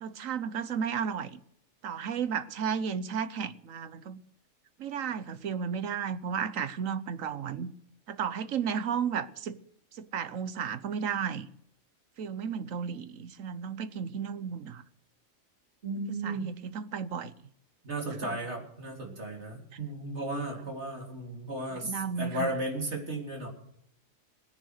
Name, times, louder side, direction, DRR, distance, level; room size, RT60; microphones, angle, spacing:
voice 1, 0.0-1.4 1.8-4.2 4.8-7.7 8.1-9.6 9.9-11.5 12.2-14.8 16.0-17.3 18.2-18.4 21.7-22.5, right 7 dB, 75° right, 1.3 m, -33 dB
voice 2, 15.8-16.5 17.8-23.5, right 1 dB, 55° right, 3.7 m, -35 dB
18.5 x 10.5 x 6.5 m
omnidirectional pair, 1.4 m